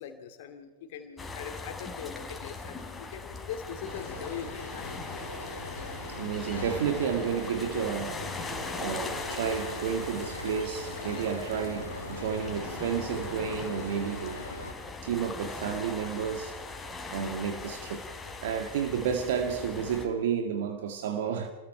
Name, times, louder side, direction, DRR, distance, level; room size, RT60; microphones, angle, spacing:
voice 1, 0.0-5.0 17.6-17.8, left 8 dB, 55° left, 2.5 m, -41 dB
sound 1, 1.2-20.1, left 3 dB, 10° left, 4.1 m, -40 dB
sound 2, 3.9-14.7, left 1 dB, 85° left, 3.0 m, -41 dB
voice 2, 6.1-8.5 8.8-14.4 15.0-16.6 17.1-18.0 18.4-21.5, right 7 dB, 60° right, 2.0 m, -31 dB
28.0 x 21.0 x 4.5 m
figure-of-eight pair, 90°, 0 cm